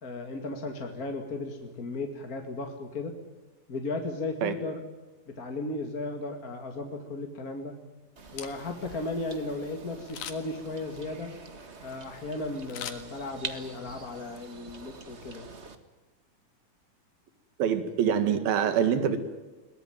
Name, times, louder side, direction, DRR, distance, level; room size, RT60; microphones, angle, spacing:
voice 1, 0.0-3.1 3.7-4.8 5.3-7.7 8.3-11.3 11.8-15.5, left 2 dB, 30° left, 4 dB, 1.9 m, -35 dB
Camera, 8.2-8.9 10.1-10.6 12.7-13.6 14.0-14.1, left 9 dB, 80° left, 3.5 m, -41 dB
sound 1, 8.2-15.8, right 4 dB, 45° right, 0.8 m, -45 dB
voice 2, 17.6-19.2, right 8 dB, 85° right, 10 dB, 3.7 m, -25 dB
22.5 x 19.5 x 9.2 m, 1.2 s
omnidirectional pair, 4.1 m